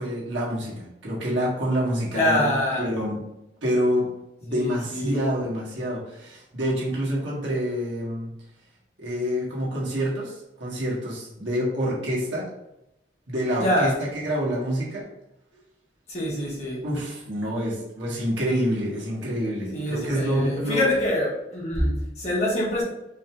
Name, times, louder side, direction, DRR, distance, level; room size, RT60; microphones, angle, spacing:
voice 1, 0.0-3.2 3.6-4.1 4.4-8.3 9.0-12.5 13.3-13.9 14.2-15.1 16.8-20.9, equal, 90° right, -5 dB, 1.7 m, -27 dB
voice 2, 2.1-2.8 4.5-5.2 13.6-14.0 16.1-16.8 19.7-22.8, left 1 dB, 35° left, -5 dB, 1.5 m, -25 dB
4.8 x 3.4 x 3.0 m, 0.86 s
head